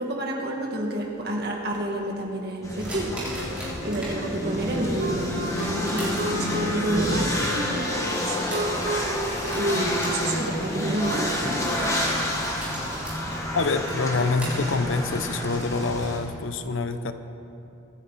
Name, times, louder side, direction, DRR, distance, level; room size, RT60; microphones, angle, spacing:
voice 1, 0.0-3.2 3.6-8.4 9.6-12.0, right 1 dB, 50° right, 0 dB, 2.1 m, -29 dB
sound 1, 0.8-4.1 4.5-15.5, right 1 dB, 5° right, 3.9 m, -40 dB
sound 2, 2.6-16.2, equal, 15° left, 1.7 m, -29 dB
Wind instrument woodwind instrument, 3.2-12.7, equal, 85° right, 1.6 m, -34 dB
voice 2, 13.5-17.1, left 3 dB, 75° left, 9 dB, 0.8 m, -26 dB
24.5 x 10.0 x 4.2 m, 2.8 s
head